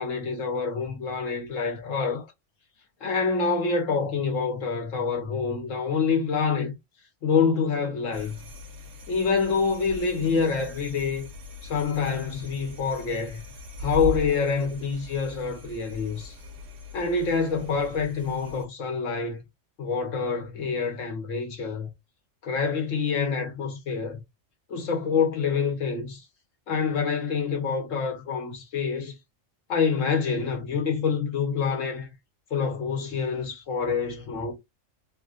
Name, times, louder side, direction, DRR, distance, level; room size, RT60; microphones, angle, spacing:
voice 1, 0.0-2.2 3.0-6.7 7.2-8.4 9.1-11.3 11.6-13.4 13.8-16.3 16.9-19.4 19.8-21.9 22.4-24.2 24.7-26.2 26.7-29.1 29.7-32.1 32.5-34.5, left 5 dB, 75° left, 1.4 m, -26 dB
sound 1, 8.1-18.6, left 2 dB, 75° right, 1.0 m, -40 dB
3.3 x 2.5 x 2.4 m
omnidirectional pair, 1.3 m